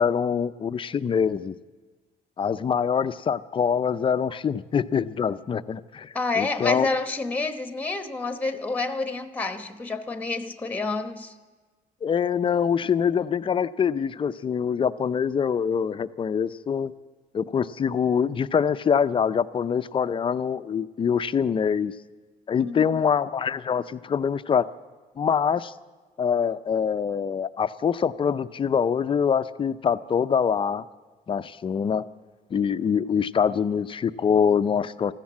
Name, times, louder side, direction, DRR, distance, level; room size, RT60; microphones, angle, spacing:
voice 1, 0.0-1.5 2.4-6.9 12.0-16.9 17.3-21.9 22.5-24.7 25.2-25.7 26.2-30.8 31.3-32.0 32.5-35.1, left 7 dB, 30° left, 0.5 m, -24 dB
voice 2, 6.1-11.3 22.6-23.0, left 3 dB, 10° left, 1.0 m, -29 dB
14.5 x 13.5 x 7.5 m
cardioid pair, 110°, 17 cm